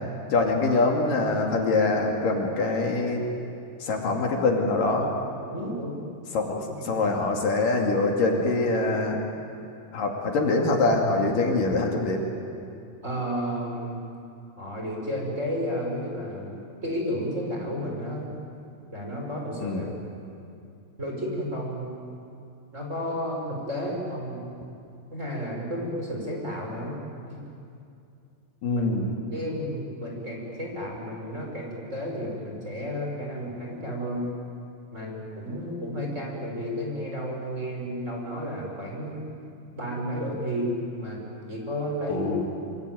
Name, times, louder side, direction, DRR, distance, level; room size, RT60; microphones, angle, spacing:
voice 1, 0.3-3.3 3.8-5.2 6.3-6.5 6.8-9.2 9.9-12.2 19.6-19.9 28.6-29.1 42.1-42.5, left 3 dB, 65° left, 1 dB, 4.0 m, -24 dB
voice 2, 5.5-6.0 6.9-7.1 13.0-14.0 14.6-18.3 18.9-19.9 21.0-21.9 22.7-24.4 25.1-27.0 27.3-27.4 28.7-28.9 29.3-34.3 34.9-39.2 39.8-40.7 41.0-41.2 41.5-42.3, equal, 20° right, -1 dB, 5.2 m, -32 dB
26.0 x 25.0 x 9.3 m, 2.6 s
omnidirectional pair, 4.2 m